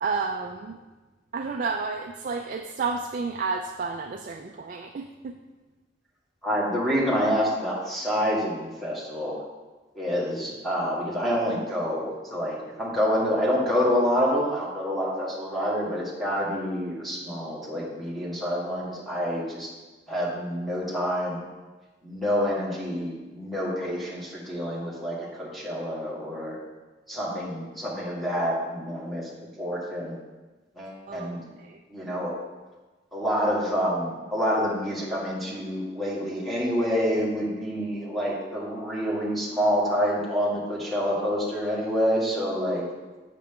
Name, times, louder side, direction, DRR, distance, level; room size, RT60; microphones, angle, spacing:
voice 1, 0.0-0.8 1.3-5.4 31.1-31.3 31.6-31.8, right 4 dB, 50° right, 4 dB, 0.4 m, -31 dB
voice 2, 6.4-9.4 9.9-19.7 20.1-21.4 22.0-26.6 27.1-29.3 29.6-30.1 30.7-31.4 31.9-32.4 33.1-42.8, equal, ahead, -6 dB, 1.6 m, -27 dB
7.5 x 5.8 x 3.6 m, 1.2 s
head